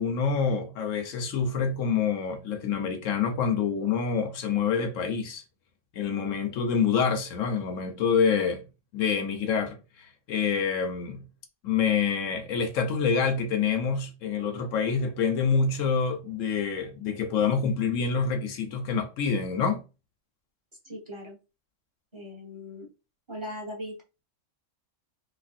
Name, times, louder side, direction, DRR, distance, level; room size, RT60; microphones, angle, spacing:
voice 1, 0.0-5.4 5.9-8.6 8.9-11.2 11.6-19.8, left 6 dB, 80° left, 1.0 m, -27 dB
voice 2, 20.8-21.4 22.1-22.9 23.3-23.9, left 1 dB, 25° right, 1.2 m, -39 dB
3.2 x 3.2 x 2.5 m
omnidirectional pair, 1.3 m